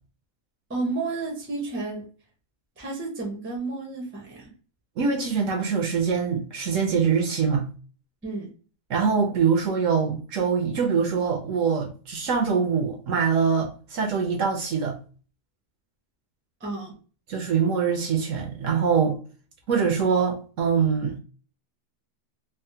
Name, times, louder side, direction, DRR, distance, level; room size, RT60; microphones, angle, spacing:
voice 1, 0.7-2.1 2.8-4.5 8.2-8.5 16.6-16.9, right 3 dB, 20° right, 0.3 m, -31 dB
voice 2, 5.0-7.7 8.9-15.0 17.3-19.2 19.7-21.2, right 6 dB, 70° right, 0.8 m, -24 dB
3.4 x 2.0 x 2.6 m
omnidirectional pair, 1.7 m